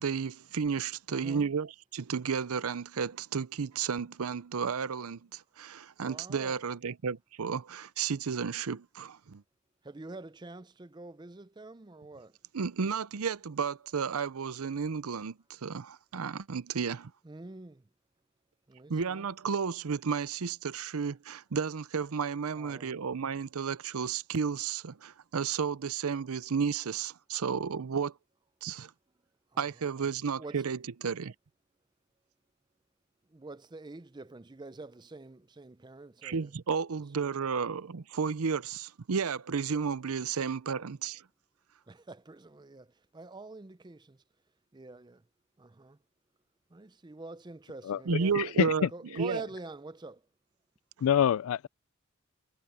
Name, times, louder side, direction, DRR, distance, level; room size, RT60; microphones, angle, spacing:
voice 1, 0.0-9.4 12.5-17.1 18.9-28.1 28.6-28.9 29.6-31.3 36.2-41.2 48.1-48.9 49.1-49.4, right 6 dB, 85° right, 0.6 m, -32 dB
voice 2, 1.1-1.5 6.0-6.6 9.8-12.4 17.2-17.9 18.7-19.3 22.5-23.0 29.5-29.7 30.4-30.6 33.3-36.5 37.2-37.7 40.7-40.9 41.9-44.2 44.7-45.2 45.6-46.0 46.7-48.5 48.9-50.2, right 2 dB, 20° right, 0.5 m, -46 dB
voice 3, 47.8-48.9 51.0-51.7, left 9 dB, 75° left, 0.3 m, -27 dB
head